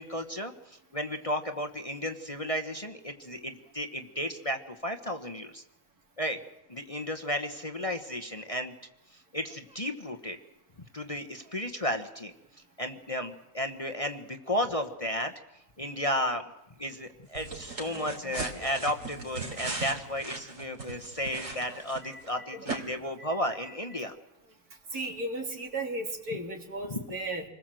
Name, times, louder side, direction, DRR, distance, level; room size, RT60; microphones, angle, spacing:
voice 1, 0.0-5.6 6.2-6.4 6.7-8.7 9.1-10.4 10.9-12.3 12.8-15.3 15.8-16.5 16.8-24.1 26.9-27.0, equal, 25° left, 6 dB, 1.1 m, -33 dB
sound 1, 17.4-22.3 22.7-22.8, right 3 dB, 60° right, 3.4 m, -38 dB
voice 2, 17.8-18.3 21.3-21.4 22.1-22.2 22.5-23.3 24.9-27.4, right 2 dB, 80° right, 2 dB, 3.5 m, -36 dB
27.0 x 20.5 x 7.7 m, 0.89 s
omnidirectional pair, 1.6 m